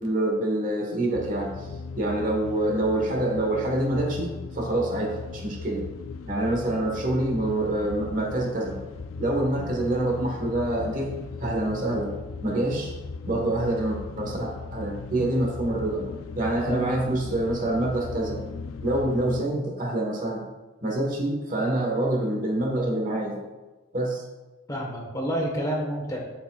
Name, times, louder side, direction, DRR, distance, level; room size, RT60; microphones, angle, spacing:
voice 1, 0.0-1.7 2.0-5.8 6.2-8.8 9.2-11.1 11.4-12.1 12.4-12.9 13.3-16.1 16.3-18.4 18.8-20.5 20.8-23.4 23.9-24.2, right 1 dB, 40° right, 0 dB, 1.3 m, -26 dB
sound 1, 1.1-19.5, left 4 dB, 80° left, 0.4 m, -38 dB
voice 2, 24.7-26.2, equal, 15° left, -2 dB, 1.3 m, -29 dB
12.5 x 4.7 x 2.4 m, 1.2 s
head